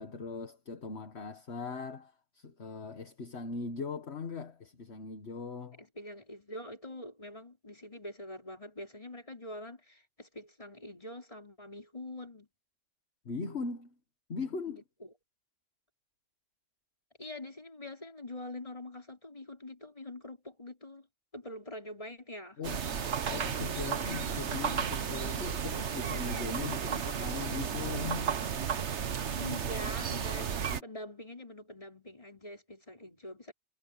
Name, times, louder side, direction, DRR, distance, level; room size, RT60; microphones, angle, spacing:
voice 1, 0.0-5.8 13.2-13.9 14.3-14.8 22.6-22.9 23.3-28.4, left 4 dB, 50° left, 1.7 m, -40 dB
voice 2, 5.8-12.5 14.7-15.1 17.2-21.1 21.3-22.6 23.9-24.4 24.7-25.0 29.3-30.6 30.8-33.5, left 1 dB, 25° left, 4.7 m, -45 dB
sound 1, 22.6-30.8, right 7 dB, 60° right, 1.3 m, -33 dB
omnidirectional pair, 1.4 m